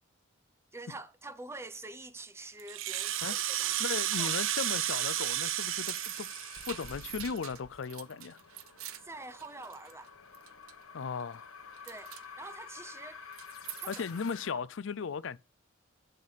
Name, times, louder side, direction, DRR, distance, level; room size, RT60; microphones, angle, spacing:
voice 1, 0.7-4.3 9.0-10.1 11.8-13.2 13.8-14.6, right 2 dB, 10° right, 0.6 m, -46 dB
Rattle (instrument), 2.6-7.4, right 14 dB, 65° right, 0.6 m, -33 dB
sound 1, 3.0-14.5, left 5 dB, 85° left, 1.1 m, -49 dB
voice 2, 3.8-6.3 6.7-8.4 10.9-11.5 13.9-15.4, left 5 dB, 60° left, 0.4 m, -37 dB
sound 2, 5.6-10.1 10.3-10.8 11.2-11.5 11.7-12.3 13.2-14.2, right 12 dB, 85° right, 0.9 m, -46 dB
11.0 x 6.7 x 4.1 m
head